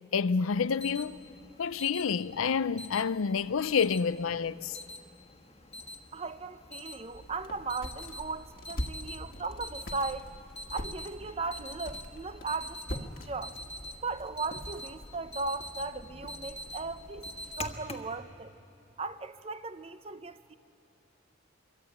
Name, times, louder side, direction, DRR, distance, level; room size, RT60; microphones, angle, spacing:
voice 1, 0.1-1.2 1.6-4.8, left 6 dB, 80° left, 0.5 m, -28 dB
Alarm, 0.5-18.1, left 1 dB, 30° left, 1.4 m, -46 dB
voice 2, 6.1-10.3 10.7-13.6 14.0-17.2 17.6-18.5 19.0-20.5, right 3 dB, 30° right, 0.7 m, -37 dB
sound 1, 7.1-17.6, equal, 45° left, 1.6 m, -44 dB
23.5 x 23.5 x 9.0 m
head